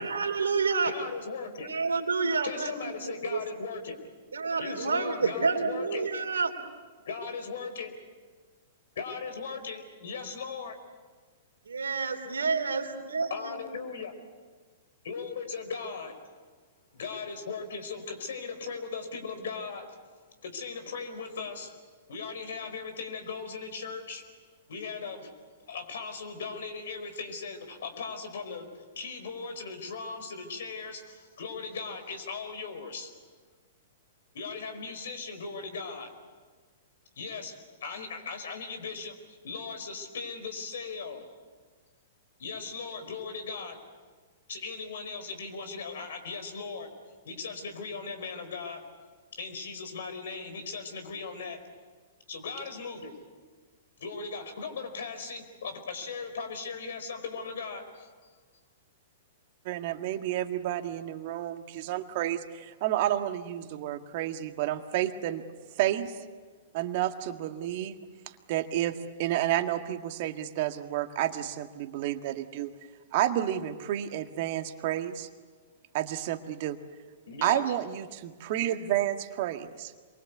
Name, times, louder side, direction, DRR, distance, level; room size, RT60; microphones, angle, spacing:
voice 1, 0.0-0.9 1.6-3.4 4.3-6.6 11.7-13.6, right 4 dB, 85° right, 6 dB, 3.0 m, -29 dB
voice 2, 0.8-1.7 2.4-4.0 4.6-6.1 7.1-7.9 9.0-10.7 13.3-14.1 15.0-16.2 16.9-20.0 20.4-21.7 22.1-24.3 24.7-25.3 25.7-33.1 34.3-36.1 37.2-39.2 39.4-41.3 42.4-43.8 44.5-47.0 47.2-48.9 49.3-51.7 52.3-53.1 54.0-58.1 77.3-77.7, left 5 dB, 70° left, 8 dB, 4.6 m, -38 dB
voice 3, 59.6-65.4 65.8-66.1 66.7-67.9 68.5-72.7 73.1-75.3 75.9-76.8 77.4-79.9, right 12 dB, 50° right, 7 dB, 1.7 m, -30 dB
27.5 x 23.0 x 8.2 m, 1.5 s
hypercardioid pair, 115°, 0 cm